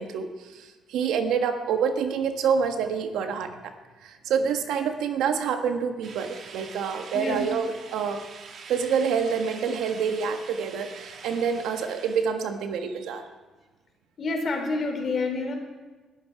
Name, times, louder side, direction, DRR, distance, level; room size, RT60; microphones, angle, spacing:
voice 1, 0.0-3.5 4.0-8.2 8.7-13.3, right 6 dB, 85° right, 6 dB, 1.5 m, -27 dB
sound 1, 6.0-12.2, right 5 dB, 60° right, 2.0 m, -44 dB
voice 2, 14.2-15.6, left 3 dB, 50° left, 2 dB, 4.1 m, -28 dB
22.0 x 12.0 x 4.8 m, 1.3 s
cardioid pair, 90°, 0 cm